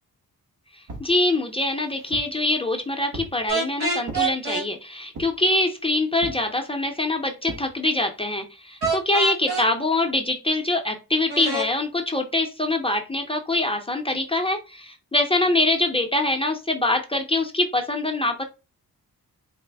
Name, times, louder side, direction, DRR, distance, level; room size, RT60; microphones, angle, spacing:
sound 1, 0.9-1.1 1.7-2.4 3.1-3.4 4.0-4.3 5.1-5.5 6.2-6.5 7.5-7.7 8.8-9.0, right 2 dB, 55° right, 1.2 m, -38 dB
voice 1, 1.0-18.4, left 2 dB, 15° left, 4 dB, 0.6 m, -24 dB
sound 2, 3.5-4.7 8.8-9.7 11.3-11.7, right 3 dB, 80° right, 1.1 m, -26 dB
4.1 x 2.1 x 3.4 m, 0.28 s
cardioid pair, 90°, 37 cm